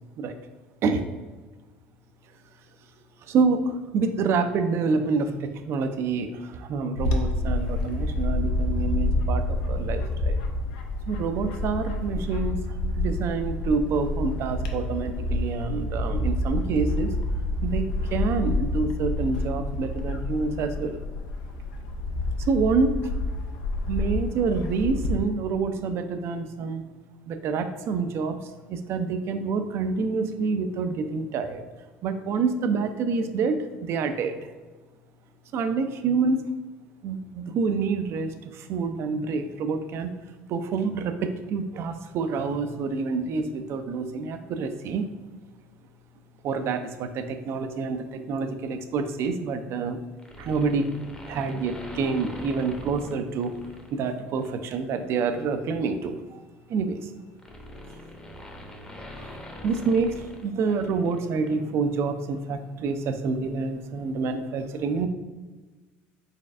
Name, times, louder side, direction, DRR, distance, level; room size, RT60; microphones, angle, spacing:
voice 1, 3.3-10.4 11.1-12.6 13.0-17.1 17.6-21.0 22.5-23.0 23.9-26.9 27.3-31.6 32.0-34.4 35.5-36.5 37.0-40.1 40.5-45.1 46.4-50.0 50.4-51.0 51.3-53.6 53.9-56.4 56.7-57.1 59.2-59.3 59.6-65.1, right 4 dB, 55° right, 8 dB, 0.4 m, -27 dB
Bird / Wind, 7.0-25.2, left 2 dB, 80° left, 0.4 m, -28 dB
sound 1, 50.2-53.9 54.4-54.6 55.8-61.2 61.4-61.5, left 1 dB, 15° left, 0.7 m, -43 dB
4.1 x 3.2 x 2.4 m, 1.3 s
hypercardioid pair, 75°, 5 cm